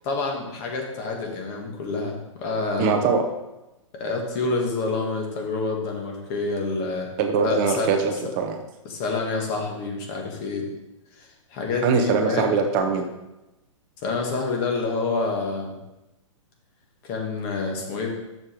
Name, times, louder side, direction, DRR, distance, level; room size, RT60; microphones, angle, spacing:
voice 1, 0.0-3.0 4.0-7.1 7.4-7.9 8.9-10.7 11.2-12.5 14.0-15.8 17.1-18.1, left 3 dB, 35° left, 1 dB, 1.8 m, -28 dB
voice 2, 2.8-3.2 7.2-8.6 11.8-13.1, right 5 dB, 35° right, 5 dB, 0.7 m, -22 dB
6.7 x 5.3 x 4.5 m, 0.96 s
hypercardioid pair, 130°, 17 cm